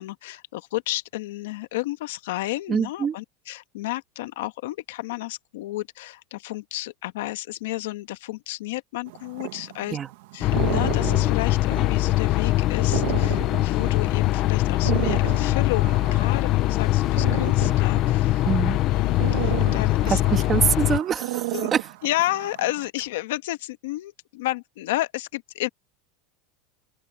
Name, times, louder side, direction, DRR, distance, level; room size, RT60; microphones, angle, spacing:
voice 1, 0.0-10.0 10.3-18.4 18.9-20.2 21.5-21.7 22.0-25.7, left 17 dB, 75° left, 1.5 m, -31 dB
voice 2, 2.7-3.1 9.9-10.1 18.4-18.8 20.1-21.9, right 7 dB, 20° right, 2.1 m, -25 dB
sound 1, 9.1-22.9, right 19 dB, 65° right, 1.9 m, -34 dB
sound 2, 10.4-21.0, left 16 dB, 35° left, 0.6 m, -22 dB
supercardioid pair, 175°, 0 cm